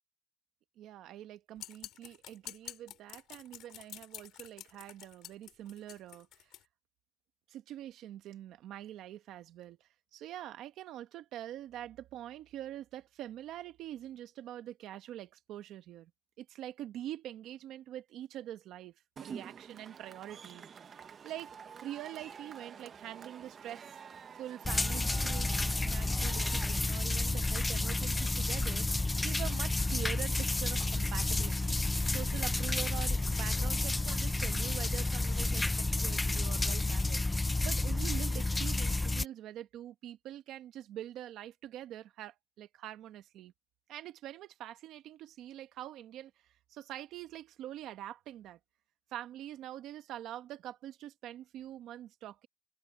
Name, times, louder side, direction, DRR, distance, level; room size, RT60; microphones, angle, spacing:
voice 1, 0.8-6.5 7.5-16.1 16.4-20.6 21.2-21.5 21.8-23.9 24.3-31.8 32.1-37.2 37.6-43.5 43.9-48.6 49.1-52.5, right 12 dB, 85° right, 1.4 m, -45 dB
sound 1, 1.6-6.6, left 13 dB, 85° left, 7.8 m, -48 dB
Cheering / Crowd, 19.2-26.8, right 7 dB, 45° right, 1.2 m, -48 dB
sound 2, 24.6-39.2, left 2 dB, 15° left, 0.6 m, -31 dB
cardioid pair, 115°, 0 cm